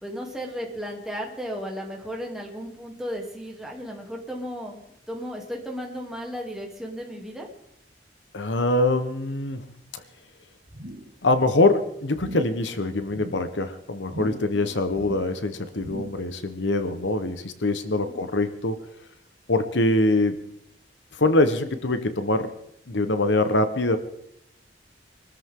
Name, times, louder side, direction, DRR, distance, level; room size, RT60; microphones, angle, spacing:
voice 1, 0.0-4.8 5.1-7.5 14.5-14.8 17.9-18.2, equal, 5° right, -1 dB, 3.0 m, -35 dB
voice 2, 8.3-9.7 11.2-18.8 19.5-20.3 21.2-22.5 22.9-24.0, left 2 dB, 80° left, 9 dB, 1.2 m, -23 dB
sound 1, 10.7-11.2 11.4-11.8 12.1-12.6 13.0-13.5 14.0-14.6 14.9-15.4 15.8-16.3 16.7-16.8, right 1 dB, 75° right, 3.0 m, -39 dB
24.0 x 13.5 x 3.8 m, 0.76 s
head